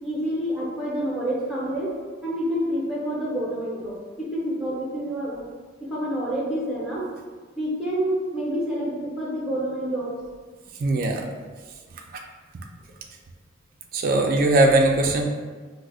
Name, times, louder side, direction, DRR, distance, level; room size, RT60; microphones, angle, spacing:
voice 1, 0.0-1.9 2.2-5.4 5.9-7.1 7.5-10.1, equal, 5° right, -6 dB, 0.8 m, -28 dB
voice 2, 10.8-11.2 13.9-15.2, right 2 dB, 45° right, 1 dB, 0.3 m, -19 dB
4.9 x 2.0 x 2.4 m, 1.4 s
head